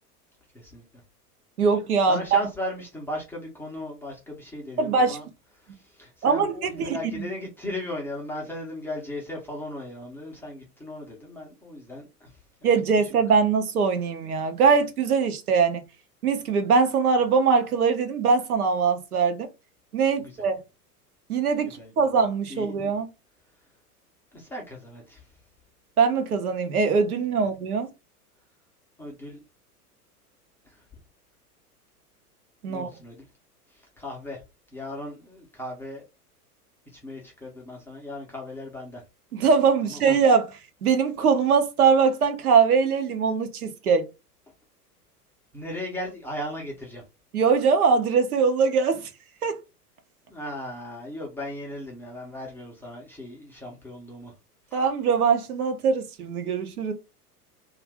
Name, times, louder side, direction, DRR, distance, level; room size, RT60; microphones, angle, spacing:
voice 1, 1.6-2.4 4.8-5.2 6.2-7.0 12.6-15.8 16.2-19.5 19.9-20.6 21.3-23.1 26.0-27.9 32.6-32.9 39.3-44.1 47.3-49.1 49.4-49.5 54.7-56.9, right 5 dB, 70° right, 0.8 m, -22 dB
voice 2, 2.1-5.2 5.6-12.4 13.0-13.1 20.2-20.4 21.6-22.1 22.5-22.8 24.3-25.3 27.4-27.5 29.0-29.4 30.6-30.8 32.7-33.3 33.7-34.4 34.7-36.0 36.9-39.0 39.8-40.0 45.5-47.0 50.3-54.3 54.7-54.8 56.8-56.9, left 1 dB, 5° left, 0.5 m, -37 dB
2.5 x 2.4 x 3.4 m
figure-of-eight pair, 95°, 47 cm